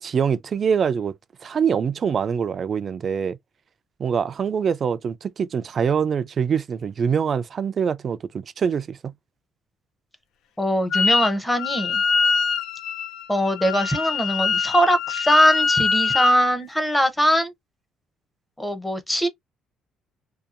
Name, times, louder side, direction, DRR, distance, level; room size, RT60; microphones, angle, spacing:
voice 1, 0.0-1.2 1.4-3.4 4.0-8.2 8.6-9.1, right 7 dB, 45° right, 0.3 m, -24 dB
voice 2, 10.6-12.0 13.3-17.5 18.6-19.3, equal, 5° left, 0.7 m, -21 dB
Wind instrument woodwind instrument, 10.9-11.3 11.6-16.4, left 5 dB, 80° left, 0.4 m, -23 dB
2.7 x 2.2 x 2.4 m
cardioid pair, 105°, 0 cm